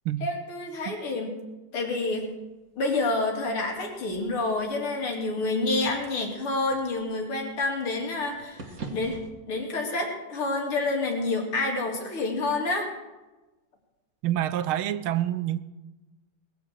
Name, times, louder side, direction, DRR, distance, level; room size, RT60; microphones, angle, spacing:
voice 1, 0.2-1.4 1.7-2.3 2.8-9.2 9.5-12.9, left 2 dB, 85° left, 3.5 m, -28 dB
sound 1, 2.3-9.3, right 3 dB, 45° right, 1.9 m, -46 dB
voice 2, 14.2-15.6, right 12 dB, 80° right, 1.5 m, -27 dB
20.0 x 7.6 x 7.6 m
omnidirectional pair, 2.3 m